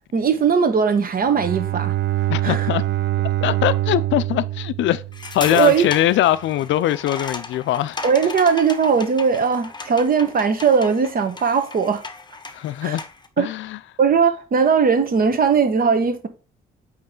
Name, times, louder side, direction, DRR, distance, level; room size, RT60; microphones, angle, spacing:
voice 1, 0.1-1.9 2.4-2.7 5.4-5.9 8.0-12.0 12.8-13.0 13.4-13.5 14.0-16.3, right 6 dB, 45° right, 1.2 m, -19 dB
Bowed string instrument, 1.2-5.7, right 15 dB, 70° right, 0.4 m, -24 dB
voice 2, 2.3-2.8 3.4-5.0 5.3-8.0 12.5-13.0 13.4-13.8, left 13 dB, 70° left, 0.4 m, -21 dB
sound 1, 5.1-13.3, left 4 dB, 20° left, 0.9 m, -35 dB
8.6 x 3.1 x 3.8 m
cardioid pair, 90°, 20 cm